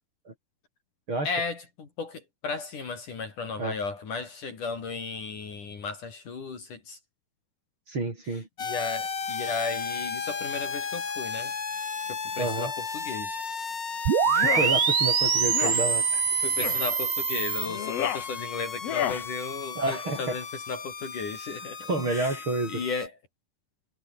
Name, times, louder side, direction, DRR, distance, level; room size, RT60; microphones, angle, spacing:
voice 1, 1.2-7.0 8.3-11.5 12.1-13.4 16.4-23.1, left 4 dB, 50° left, 4.8 m, -35 dB
voice 2, 7.9-8.5 12.4-12.7 14.3-16.2 19.8-20.4 21.9-22.8, right 2 dB, 30° right, 5.3 m, -29 dB
sound 1, 8.6-23.1, left 5 dB, 35° left, 2.3 m, -35 dB
sound 2, 14.1-17.7, right 7 dB, 70° right, 6.7 m, -24 dB
sound 3, 14.3-14.7 15.5-15.8 16.6-16.8 17.7-18.3 18.8-19.2, left 10 dB, 75° left, 1.4 m, -30 dB
omnidirectional pair, 5.0 m